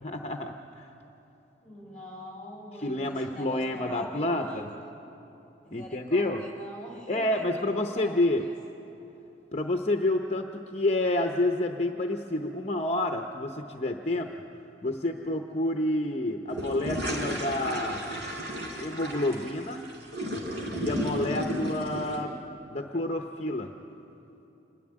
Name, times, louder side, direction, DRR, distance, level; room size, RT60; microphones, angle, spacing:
voice 1, 0.0-0.9 2.8-4.7 5.7-6.4 7.1-8.4 9.5-14.3 14.8-18.1 18.8-19.9 20.8-22.3 22.7-23.7, left 1 dB, 35° left, 4 dB, 0.7 m, -29 dB
voice 2, 1.6-4.6 5.6-8.1 8.4-8.5, equal, 5° left, -1 dB, 4.3 m, -43 dB
sound 1, 16.5-22.2, equal, 75° right, 3.7 m, -33 dB
27.0 x 11.0 x 9.8 m, 2.9 s
head